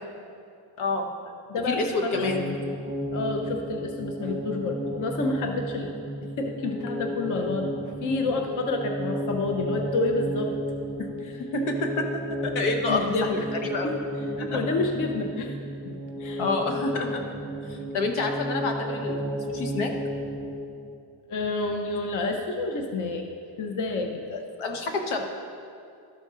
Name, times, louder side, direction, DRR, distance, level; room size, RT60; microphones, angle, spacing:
voice 1, 0.8-1.1 1.7-2.5 11.0-11.1 11.5-12.1 12.4-13.0 13.3-13.9 14.4-14.6 16.4-17.2 17.7-19.2 19.5-19.9 24.3-25.2, left 3 dB, 75° left, 3 dB, 1.2 m, -28 dB
voice 2, 1.5-2.6 3.1-5.9 6.2-7.7 8.0-10.5 11.2-11.4 12.9-13.5 13.8-14.0 14.5-15.5 15.8-16.4 21.3-23.3 23.6-24.2, left 3 dB, 40° left, 4 dB, 0.6 m, -29 dB
sound 1, 2.1-20.9, equal, 5° right, 0.9 m, -33 dB
13.0 x 5.2 x 3.7 m, 2.4 s
cardioid pair, 165°, 48 cm